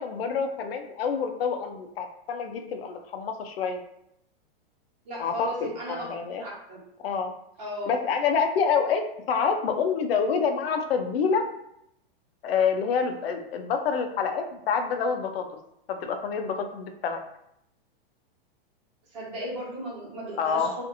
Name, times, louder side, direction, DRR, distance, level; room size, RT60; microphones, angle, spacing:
voice 1, 0.0-3.8 5.2-6.4 7.0-7.3 7.9-11.5 12.4-15.4 15.9-17.2 20.4-20.7, left 6 dB, 80° left, 5 dB, 0.5 m, -27 dB
voice 2, 5.0-6.8 7.6-7.9 19.1-20.8, equal, 45° right, -6 dB, 1.1 m, -35 dB
2.6 x 2.5 x 2.5 m, 0.78 s
supercardioid pair, 175°, 29 cm